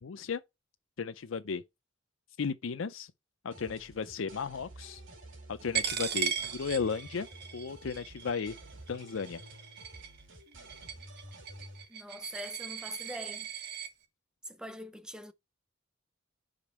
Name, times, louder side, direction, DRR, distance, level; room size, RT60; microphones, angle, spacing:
voice 1, 0.0-0.4 1.0-1.6 2.4-3.1 3.4-5.0 5.5-7.3 7.5-8.6 8.9-9.4, left 5 dB, 75° left, 0.5 m, -35 dB
sound 1, 3.5-11.8, right 1 dB, 70° right, 2.9 m, -51 dB
Coin (dropping), 5.7-13.9, right 8 dB, 55° right, 1.3 m, -38 dB
voice 2, 11.9-13.5 14.5-15.3, equal, 5° right, 0.6 m, -43 dB
6.0 x 5.1 x 4.2 m
head